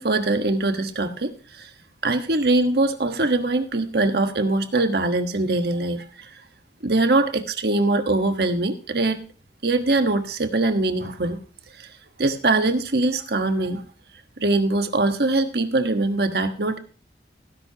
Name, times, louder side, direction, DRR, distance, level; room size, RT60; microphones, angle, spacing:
voice 1, 0.0-1.7 2.0-6.3 6.8-9.2 9.6-11.4 11.8-11.9 12.2-13.8 14.4-16.8, right 2 dB, 60° right, 7 dB, 1.4 m, -22 dB
17.5 x 11.0 x 2.9 m, 0.38 s
head